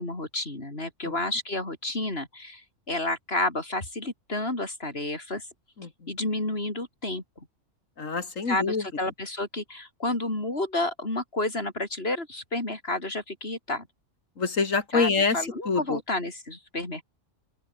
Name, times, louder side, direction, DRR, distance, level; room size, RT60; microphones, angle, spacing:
voice 1, 0.0-5.5 6.1-7.5 8.5-13.9 14.9-17.0, left 2 dB, 50° left, 5.3 m, -31 dB
voice 2, 8.0-8.8 14.4-15.4 15.7-16.0, left 4 dB, 80° left, 2.8 m, -25 dB
open air
omnidirectional pair, 1.3 m